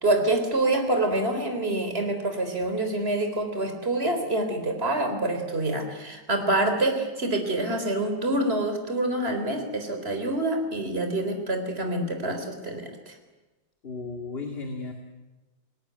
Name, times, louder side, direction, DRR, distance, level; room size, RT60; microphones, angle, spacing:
voice 1, 0.0-13.2, right 2 dB, 30° right, 6 dB, 4.0 m, -26 dB
voice 2, 13.8-14.9, left 4 dB, 30° left, 4 dB, 2.5 m, -34 dB
30.0 x 19.0 x 9.5 m, 1.2 s
omnidirectional pair, 2.1 m